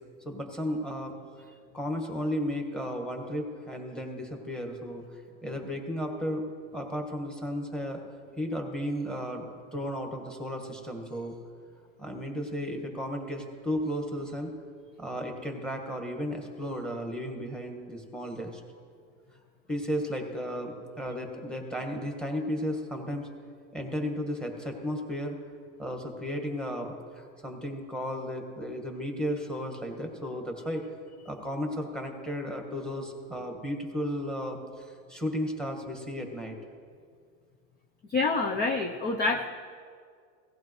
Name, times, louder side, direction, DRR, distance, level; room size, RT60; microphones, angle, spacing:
voice 1, 0.2-1.1 1.7-6.5 6.7-8.0 8.4-11.3 12.0-14.5 15.0-18.6 19.7-23.3 23.7-25.4 25.8-30.8 31.2-36.6, equal, ahead, 3 dB, 1.6 m, -34 dB
voice 2, 38.1-39.5, left 3 dB, 25° left, 2 dB, 0.7 m, -27 dB
17.5 x 15.0 x 3.2 m, 2.1 s
supercardioid pair, 135°, 40 cm